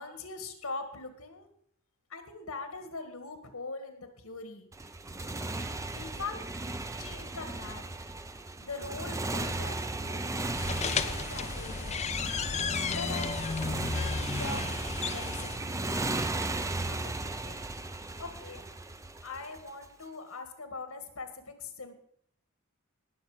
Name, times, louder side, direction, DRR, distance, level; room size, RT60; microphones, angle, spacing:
voice 1, 0.0-1.5 2.1-4.7 5.9-6.5 7.0-7.9 8.6-10.2 10.7-12.0 12.9-14.7 15.0-15.8 16.9-17.6 18.2-18.7 19.2-21.9, left 3 dB, 80° left, 7 dB, 1.8 m, -42 dB
Motorcycle, 4.7-19.9, right 2 dB, 15° right, 0.6 m, -36 dB
sound 1, 10.5-15.6, left 5 dB, 30° left, 0.5 m, -34 dB
18.5 x 6.9 x 5.0 m, 0.67 s
head